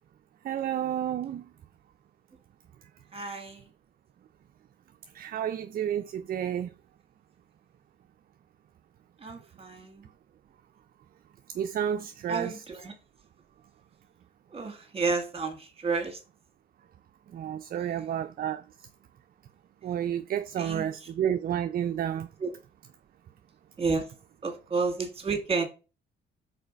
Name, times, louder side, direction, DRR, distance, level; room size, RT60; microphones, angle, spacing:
voice 1, 0.4-1.4 5.1-6.7 11.6-12.5 17.3-18.6 19.8-22.3, right 9 dB, 50° right, 0.4 m, -30 dB
voice 2, 3.1-3.6 9.2-10.1 12.3-12.9 14.5-16.2 17.8-18.0 20.6-21.1 22.4-22.5 23.8-24.1 24.4-25.6, right 4 dB, 30° right, 1.9 m, -31 dB
4.9 x 4.0 x 5.0 m
cardioid pair, 90°, 20 cm